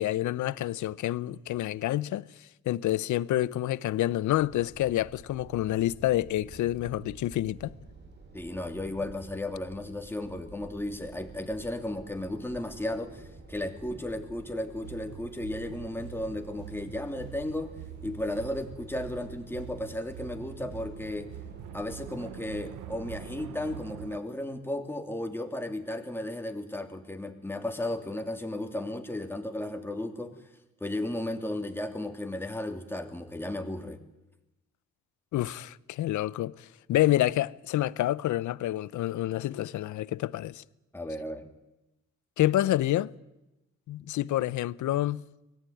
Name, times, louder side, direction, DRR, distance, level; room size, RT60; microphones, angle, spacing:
voice 1, 0.0-2.3 2.7-7.7 35.3-40.6 42.4-43.1 43.9-45.2, left 14 dB, 75° left, 0.8 m, -28 dB
sound 1, 4.3-23.4, right 3 dB, 35° right, 5.6 m, -50 dB
voice 2, 8.3-17.7 18.0-21.3 21.7-30.3 30.8-34.0 40.9-41.5 44.0-44.1, left 1 dB, 5° left, 3.0 m, -34 dB
sound 2, 14.8-24.2, right 13 dB, 80° right, 1.0 m, -45 dB
24.0 x 18.0 x 9.3 m
cardioid pair, 90°, 30 cm